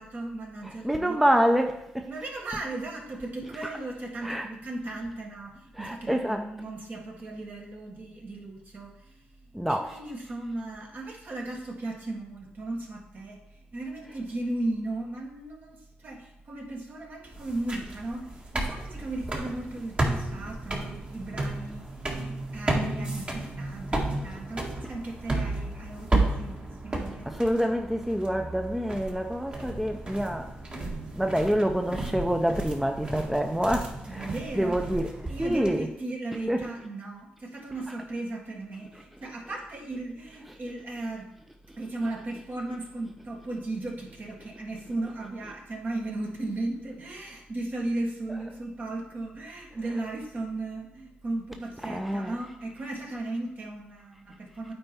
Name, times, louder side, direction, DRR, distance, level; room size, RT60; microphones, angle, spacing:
voice 1, 0.0-1.2 2.1-9.3 9.7-13.4 13.7-27.3 34.1-34.8 35.3-41.3 41.8-54.7, right 2 dB, 50° right, 1 dB, 1.7 m, -36 dB
voice 2, 0.8-2.1 4.2-4.5 5.8-6.4 9.5-9.9 27.3-30.5 31.1-35.1 35.4-35.9 36.5-36.6 51.9-52.3, equal, 5° right, 4 dB, 0.6 m, -27 dB
sound 1, 17.3-35.7, right 2 dB, 30° right, 1.6 m, -33 dB
8.7 x 4.4 x 4.3 m, 0.80 s
cardioid pair, 65°, 4 cm